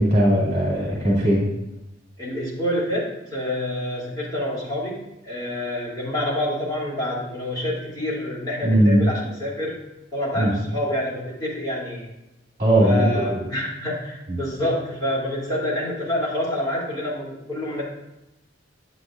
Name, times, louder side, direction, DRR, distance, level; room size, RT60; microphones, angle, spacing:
voice 1, 0.0-1.4 8.6-9.0 10.3-10.5 12.6-13.4 14.3-14.4, right 1 dB, 35° right, -5 dB, 2.5 m, -19 dB
voice 2, 2.2-9.8 10.1-12.1 12.8-17.8, left 1 dB, 20° left, -7 dB, 3.1 m, -27 dB
10.0 x 8.5 x 2.6 m, 0.92 s
head